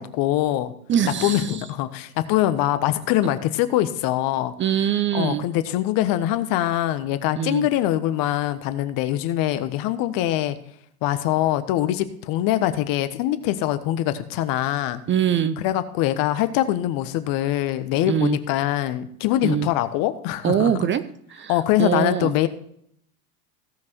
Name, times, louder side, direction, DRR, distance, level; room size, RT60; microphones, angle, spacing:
voice 1, 0.0-0.7 1.2-4.5 5.1-10.6 11.0-15.0 15.6-20.7 21.5-22.5, left 13 dB, 50° left, 11 dB, 1.2 m, -23 dB
voice 2, 0.9-1.6 4.6-5.4 7.3-7.7 15.1-15.6 18.1-18.4 19.4-19.7 20.4-21.0 21.3-22.3, right 9 dB, 25° right, 12 dB, 0.7 m, -23 dB
16.5 x 6.1 x 4.5 m, 0.67 s
hypercardioid pair, 95°, 46 cm